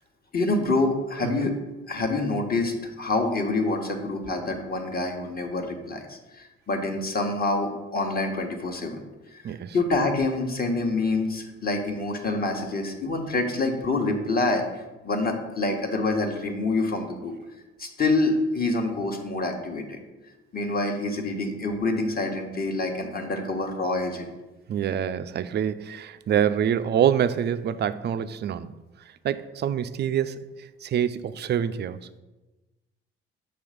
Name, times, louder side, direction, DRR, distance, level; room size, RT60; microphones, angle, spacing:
voice 1, 0.3-1.6 1.9-9.0 9.3-9.4 9.7-14.6 15.0-17.3 17.8-20.0 20.5-24.3, left 2 dB, 30° left, 1.2 m, -26 dB
voice 2, 9.4-9.8 24.7-28.7 29.2-32.0, right 9 dB, 35° right, 0.4 m, -26 dB
6.1 x 3.3 x 5.0 m
hypercardioid pair, 50°, 31 cm